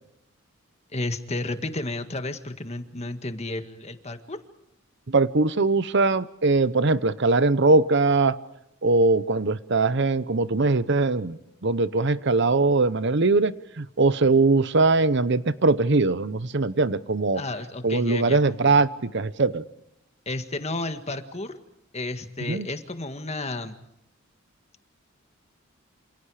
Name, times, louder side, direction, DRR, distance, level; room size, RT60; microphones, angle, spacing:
voice 1, 0.9-4.4 17.3-18.6 20.2-21.6 21.9-23.7, left 2 dB, 30° left, 8 dB, 1.8 m, -32 dB
voice 2, 5.1-8.4 8.8-17.4 17.8-19.6 22.5-22.7, right 3 dB, 55° right, 15 dB, 0.8 m, -21 dB
28.0 x 28.0 x 5.0 m, 0.82 s
head